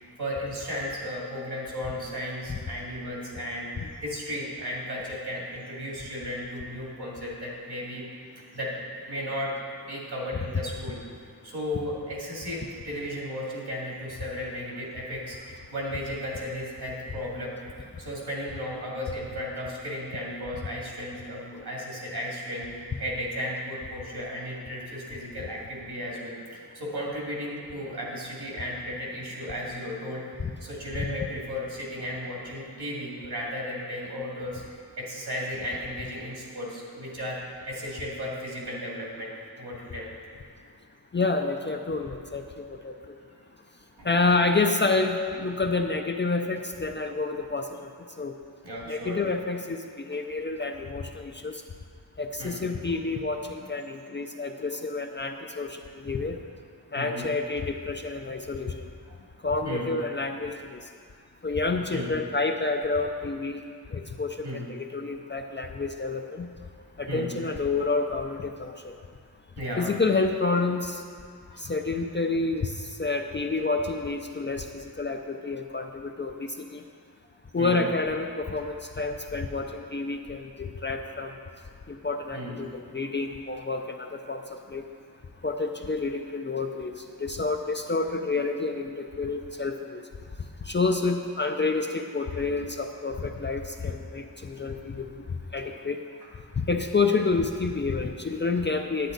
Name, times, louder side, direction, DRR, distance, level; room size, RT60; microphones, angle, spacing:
voice 1, 0.2-3.7 4.0-8.0 8.5-8.7 9.1-9.5 9.9-11.0 11.4-17.5 18.0-30.2 30.6-40.1 43.3-43.4 44.0-44.1 48.6-49.2 52.4-52.9 56.9-57.3 59.1-59.3 59.6-59.9 61.9-62.1 64.4-64.7 67.1-67.3 69.6-70.0 71.5-71.7 77.6-77.8 82.3-82.6 96.2-96.3, equal, 65° right, -4 dB, 2.5 m, -35 dB
voice 2, 41.1-42.9 44.0-47.9 48.2-48.3 48.9-51.6 52.2-56.4 56.9-58.7 59.4-60.8 61.4-63.6 63.9-66.5 67.0-68.9 69.8-71.0 71.6-76.8 77.5-81.3 81.9-84.4 84.7-84.9 85.4-86.9 87.2-90.0 90.7-95.2 95.5-96.0 96.6-99.1, left 3 dB, 30° left, 4 dB, 0.4 m, -29 dB
10.0 x 9.0 x 3.9 m, 2.1 s
wide cardioid pair, 110°, 41 cm